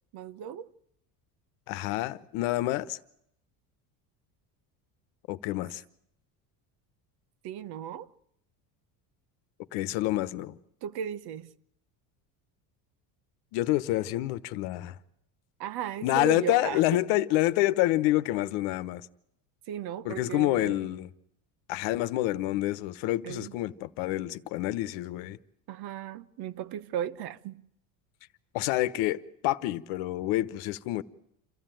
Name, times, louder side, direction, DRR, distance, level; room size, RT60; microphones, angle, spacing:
voice 1, 0.1-0.7 7.4-8.1 10.8-11.5 15.6-16.8 19.7-20.9 23.2-23.6 25.7-27.6, right 10 dB, 60° right, 1.0 m, -36 dB
voice 2, 1.7-3.0 5.3-5.8 9.7-10.5 13.5-14.9 16.0-19.0 20.0-21.1 21.7-25.4 28.5-31.0, left 16 dB, 75° left, 1.1 m, -28 dB
27.5 x 13.5 x 9.1 m
supercardioid pair, 115°, 44 cm